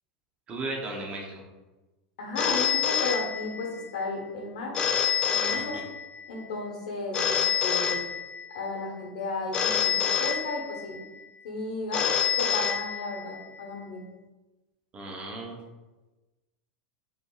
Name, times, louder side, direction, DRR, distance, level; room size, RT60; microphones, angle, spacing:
voice 1, 0.5-1.4 5.5-5.8 14.9-15.6, right 2 dB, 30° right, 0 dB, 0.8 m, -36 dB
voice 2, 2.2-4.7 5.3-5.8 6.3-8.0 8.5-11.0 11.4-14.0, left 3 dB, 75° left, 0 dB, 1.0 m, -34 dB
Telephone, 2.4-3.9 4.7-6.2 7.1-8.6 9.5-11.0 11.9-13.4, left 7 dB, 25° left, 0.3 m, -27 dB
5.0 x 3.2 x 2.4 m, 1.1 s
supercardioid pair, 120°, 4 cm